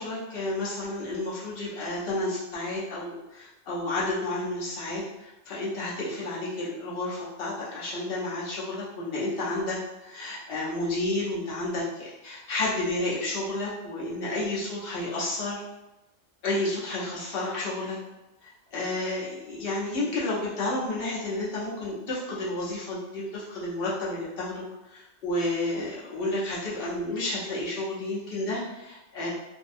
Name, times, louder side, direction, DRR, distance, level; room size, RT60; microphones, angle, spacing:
voice 1, 0.0-15.6 16.4-18.0 18.4-29.3, left 2 dB, 50° left, -7 dB, 0.9 m, -31 dB
2.6 x 2.1 x 2.5 m, 0.98 s
omnidirectional pair, 1.3 m